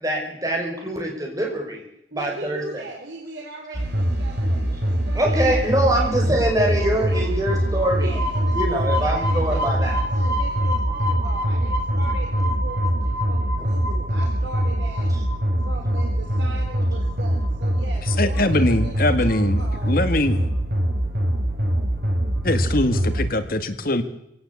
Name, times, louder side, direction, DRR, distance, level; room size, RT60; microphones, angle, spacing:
voice 1, 0.0-1.8 2.1-2.8 5.2-8.2 8.5-9.9 13.6-13.7, right 1 dB, 20° right, 0 dB, 5.7 m, -24 dB
voice 2, 2.1-6.2 6.6-7.4 8.0-15.1 15.6-20.0, right 2 dB, 80° right, 0 dB, 4.0 m, -39 dB
sound 1, 3.7-23.3, equal, 55° right, 4.6 m, -23 dB
voice 3, 18.2-20.4 22.4-24.0, left 1 dB, 50° left, 9 dB, 1.8 m, -22 dB
24.0 x 17.0 x 8.4 m, 0.82 s
head